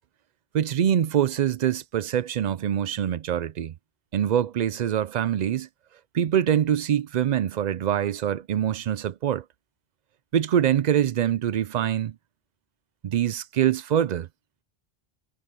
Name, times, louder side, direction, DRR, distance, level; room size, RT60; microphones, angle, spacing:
voice 1, 0.5-3.7 4.1-5.7 6.1-9.4 10.3-12.2 13.0-14.3, right 10 dB, 55° right, 0.5 m, -24 dB
omnidirectional pair, 1.0 m